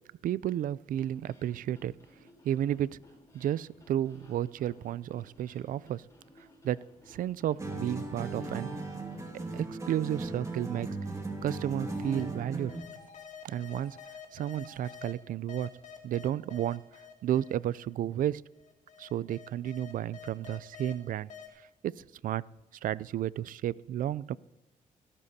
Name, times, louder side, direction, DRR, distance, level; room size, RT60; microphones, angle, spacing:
voice 1, 0.2-1.9 2.4-3.0 3.3-6.1 6.6-8.8 9.5-10.9 11.4-12.7 13.4-14.0 14.3-15.7 16.0-16.8 17.2-18.4 19.0-21.3 21.8-22.5 22.8-24.4, right 11 dB, 70° right, 21 dB, 0.4 m, -32 dB
sound 1, 0.9-9.5, left 1 dB, 20° left, 4.7 m, -59 dB
sound 2, 7.6-12.9, right 2 dB, 20° right, 2.1 m, -37 dB
sound 3, 11.8-12.2 12.7-15.1 15.5-17.8 18.6-20.9 21.3-21.5, left 7 dB, 55° left, 2.5 m, -48 dB
24.5 x 13.0 x 2.8 m, 1.0 s
cardioid pair, 100°, 14 cm